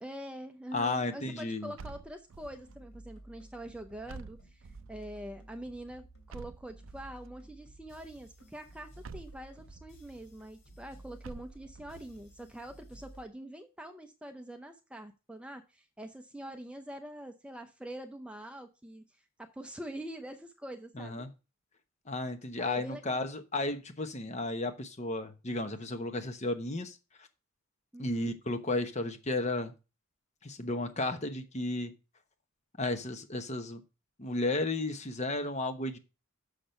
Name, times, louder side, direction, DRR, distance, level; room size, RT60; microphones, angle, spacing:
voice 1, 0.0-19.0 19.4-21.3 22.6-23.2 27.9-28.3, right 1 dB, 5° right, 6 dB, 0.6 m, -45 dB
voice 2, 0.7-1.7 21.0-21.3 22.1-27.0 28.0-29.7 30.4-31.9 32.8-33.8 34.2-36.0, left 2 dB, 35° left, 9 dB, 1.0 m, -33 dB
sound 1, 1.8-2.7 4.1-5.0 6.3-7.3 9.0-9.9 11.2-12.1, right 4 dB, 65° right, 0.5 m, -48 dB
sound 2, 2.3-13.2, right 1 dB, 80° left, 2.9 m, -54 dB
6.6 x 6.0 x 5.7 m, 0.29 s
head